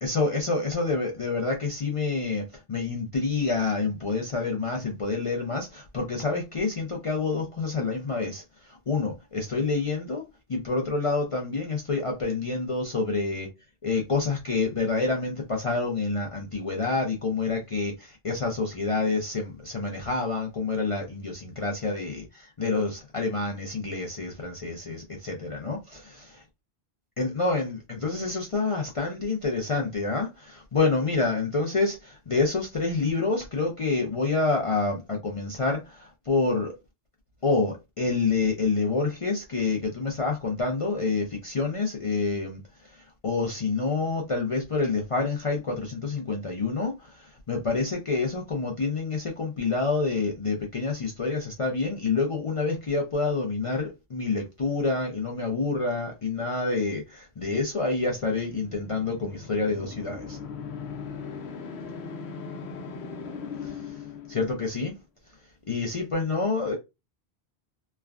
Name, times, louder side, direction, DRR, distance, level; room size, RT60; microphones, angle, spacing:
voice 1, 0.0-10.2 10.5-13.5 13.8-26.3 27.2-36.8 37.4-60.4 63.6-64.0 64.3-64.9 65.7-66.8, left 3 dB, 40° left, 0.5 m, -28 dB
sound 1, 58.0-64.9, left 5 dB, 80° left, 0.9 m, -39 dB
3.2 x 2.2 x 2.4 m
omnidirectional pair, 1.1 m